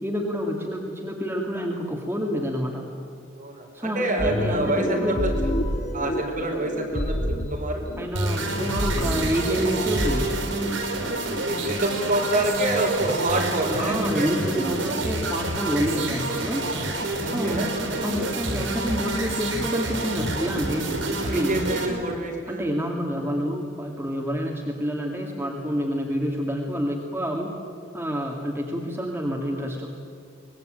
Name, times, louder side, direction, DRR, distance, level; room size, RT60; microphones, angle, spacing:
voice 1, 0.0-2.9 3.7-5.2 8.0-10.4 13.8-16.7 17.2-21.6 22.5-27.5 27.9-29.9, equal, 10° right, -1 dB, 2.2 m, -28 dB
voice 2, 3.4-5.5 5.9-7.8 11.4-14.3 17.1-17.7 21.3-22.7, right 1 dB, 45° right, 0 dB, 5.2 m, -27 dB
sound 1, 4.2-10.2, equal, 40° left, 1.6 m, -29 dB
sound 2, 8.1-21.9, right 2 dB, 80° right, 4.6 m, -28 dB
24.5 x 21.0 x 9.1 m, 2.3 s
head